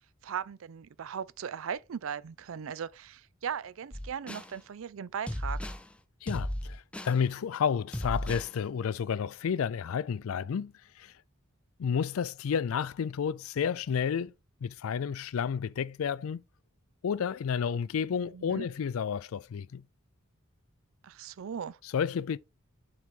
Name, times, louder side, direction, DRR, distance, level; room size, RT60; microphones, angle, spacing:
voice 1, 0.2-5.6 18.1-18.7 21.0-21.8, right 7 dB, 70° right, 0.4 m, -38 dB
sound 1, 3.9-4.5 5.3-5.9 6.3-7.2 7.9-8.5, equal, 5° left, 0.4 m, -35 dB
voice 2, 6.2-10.7 11.0-11.1 11.8-14.3 14.6-16.4 17.0-19.8 21.9-22.4, left 7 dB, 80° left, 0.4 m, -31 dB
7.4 x 4.0 x 3.7 m
head